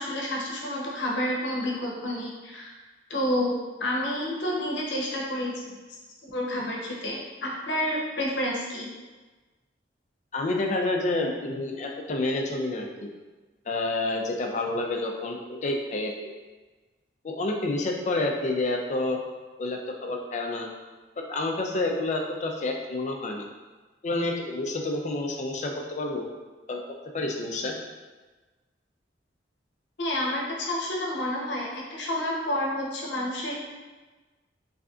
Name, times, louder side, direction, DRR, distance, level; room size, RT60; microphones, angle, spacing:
voice 1, 0.0-2.7 3.1-5.8 6.3-8.9 30.0-33.6, left 1 dB, 80° left, -2 dB, 0.8 m, -29 dB
voice 2, 10.3-13.1 13.7-16.3 17.2-19.2 19.6-20.7 21.2-23.5 24.0-26.3 26.7-26.8 27.1-27.8, left 2 dB, 40° left, 1 dB, 0.4 m, -29 dB
3.7 x 3.3 x 2.4 m, 1.3 s
head